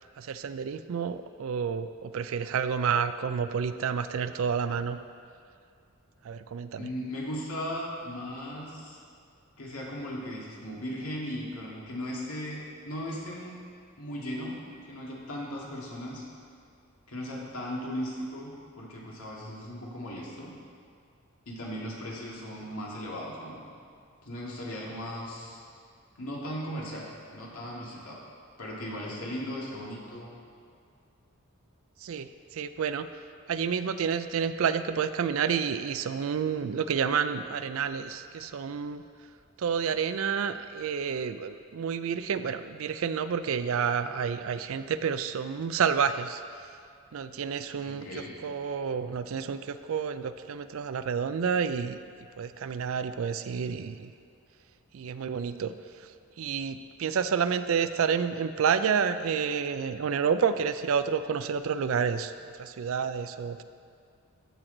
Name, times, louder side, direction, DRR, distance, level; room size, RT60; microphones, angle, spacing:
voice 1, 0.2-5.0 6.2-6.9 32.0-33.1 33.5-39.0 39.6-46.4 47.1-52.0 52.4-54.1 54.9-56.1 56.4-63.6, right 6 dB, 70° right, 12 dB, 0.4 m, -29 dB
voice 2, 6.8-9.0 9.6-13.6 14.0-14.5 14.8-16.2 17.1-20.5 21.5-23.6 24.2-25.6 26.2-28.2 28.6-30.3 47.8-48.4, equal, 80° left, -4 dB, 2.0 m, -37 dB
13.5 x 6.1 x 3.8 m, 2.3 s
head